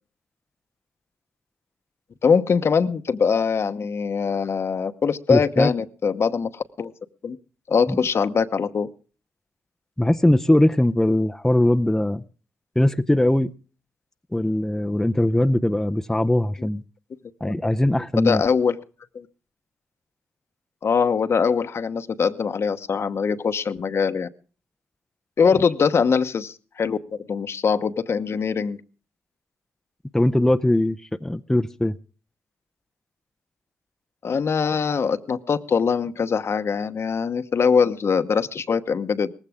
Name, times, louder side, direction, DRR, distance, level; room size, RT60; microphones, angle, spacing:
voice 1, 2.2-6.9 7.2-7.4 7.7-8.9 16.6-16.7 17.4-17.7 18.2-18.8 19.1-19.3 20.8-24.3 25.4-28.8 34.2-39.3, left 6 dB, 55° left, 10 dB, 1.0 m, -22 dB
voice 2, 5.3-5.7 7.9-8.0 10.0-12.2 12.8-13.5 14.3-16.8 17.4-18.4 30.1-31.9, left 1 dB, 10° left, 7 dB, 0.6 m, -20 dB
18.5 x 15.5 x 3.6 m, 0.37 s
cardioid pair, 65°, 5 cm